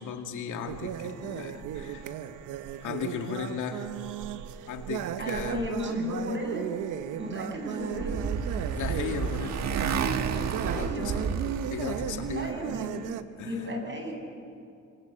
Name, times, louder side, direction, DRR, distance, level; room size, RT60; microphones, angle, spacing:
voice 1, 0.0-2.1 2.8-3.9 4.7-5.6 8.7-9.6 10.6-11.3 11.6-12.6 13.4-13.7, left 7 dB, 80° left, 4 dB, 2.3 m, -36 dB
sound 1, 0.7-13.2, right 10 dB, 90° right, 1.1 m, -36 dB
voice 2, 5.2-6.6 7.2-8.2 10.7-11.2 12.3-12.9 13.4-14.1, equal, 40° right, 2 dB, 8.0 m, -34 dB
Motorcycle, 7.4-12.5, right 6 dB, 60° right, 1.6 m, -31 dB
26.0 x 26.0 x 7.9 m, 2.5 s
cardioid pair, 90°, 30 cm